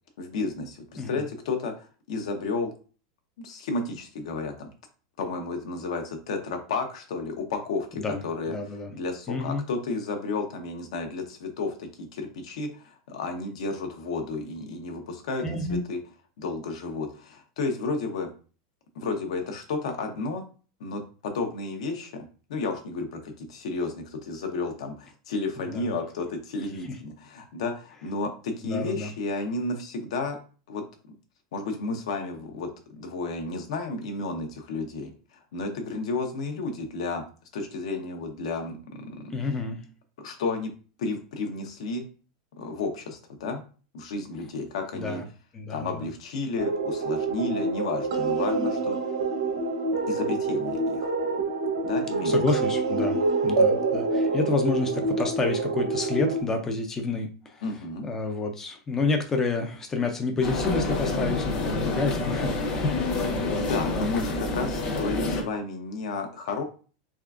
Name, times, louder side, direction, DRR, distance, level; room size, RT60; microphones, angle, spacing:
voice 1, 0.2-2.7 3.4-4.7 5.2-8.5 8.9-16.0 16.4-18.3 18.9-20.4 20.8-22.2 22.5-30.4 30.7-30.8 31.5-37.2 37.5-39.3 40.2-40.7 41.0-42.1 42.6-43.6 43.9-45.2 45.7-49.1 50.1-51.1 51.8-52.4 57.6-58.1 63.4-66.6, left 3 dB, 70° left, 4 dB, 0.7 m, -32 dB
voice 2, 8.5-8.9 9.3-9.6 15.4-15.8 25.7-25.8 28.6-29.1 39.3-39.9 44.9-45.3 45.5-46.1 52.2-57.6 58.0-64.1, left 3 dB, 10° left, 5 dB, 0.3 m, -29 dB
sound 1, 46.6-56.4, right 3 dB, 75° right, 1.0 m, -26 dB
sound 2, 60.4-65.4, left 2 dB, 30° left, 0.7 m, -28 dB
3.6 x 3.2 x 2.4 m, 0.38 s
supercardioid pair, 175°, 3 cm